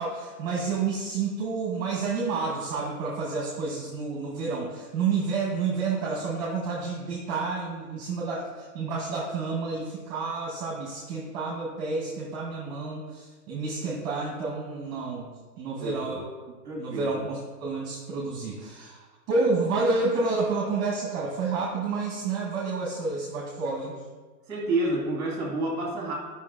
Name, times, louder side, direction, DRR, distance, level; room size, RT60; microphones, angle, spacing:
voice 1, 0.0-15.3 15.6-16.3 16.8-23.9, right 4 dB, 25° right, -3 dB, 1.0 m, -29 dB
voice 2, 16.6-17.2 24.5-26.1, right 2 dB, 10° right, -2 dB, 1.7 m, -29 dB
10.0 x 5.6 x 2.5 m, 1.4 s
hypercardioid pair, 155°, 48 cm